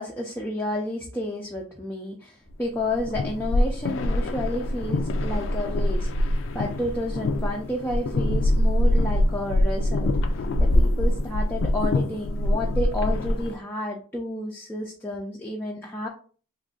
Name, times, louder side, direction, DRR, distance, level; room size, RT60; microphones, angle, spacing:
voice 1, 0.0-10.1 10.6-16.1, left 1 dB, 10° left, -2 dB, 0.4 m, -31 dB
sound 1, 2.8-13.6, left 1 dB, 80° left, 0.4 m, -24 dB
3.0 x 2.5 x 3.6 m, 0.41 s
head